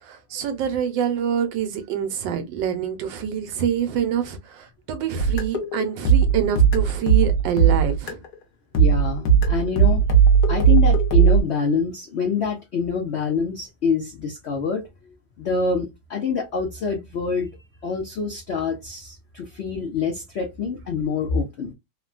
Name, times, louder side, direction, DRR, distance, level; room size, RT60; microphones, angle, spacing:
voice 1, 0.0-8.2, right 8 dB, 85° right, 1.4 m, -26 dB
sound 1, 5.2-8.3 8.7-11.4, right 7 dB, 65° left, 1.3 m, -17 dB
voice 2, 8.8-10.0 10.5-14.9 15.4-17.5 17.8-21.7, left 5 dB, 90° left, 0.5 m, -26 dB
3.4 x 2.2 x 2.3 m
omnidirectional pair, 2.0 m